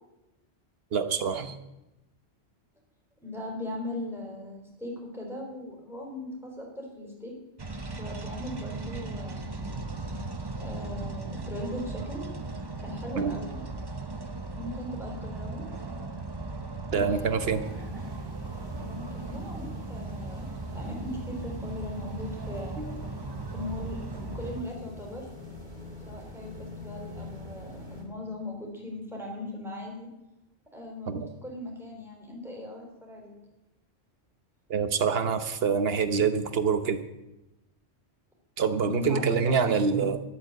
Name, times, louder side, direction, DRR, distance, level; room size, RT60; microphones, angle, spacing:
voice 1, 0.9-1.6 13.2-13.4 16.9-17.6 22.8-22.9 31.1-31.3 34.7-37.0 38.6-40.2, right 6 dB, 60° right, 10 dB, 1.2 m, -26 dB
voice 2, 3.2-7.3 8.0-9.9 10.6-12.2 12.8-13.6 14.5-15.7 16.9-17.9 18.8-20.5 20.7-22.8 23.5-25.2 26.1-30.1 30.7-33.3 38.8-40.1, left 1 dB, ahead, -1 dB, 4.1 m, -39 dB
sound 1, 7.6-24.6, right 3 dB, 25° right, 0.9 m, -37 dB
sound 2, 17.6-28.0, left 1 dB, 45° right, 2.9 m, -45 dB
12.0 x 8.7 x 8.0 m, 0.96 s
omnidirectional pair, 1.1 m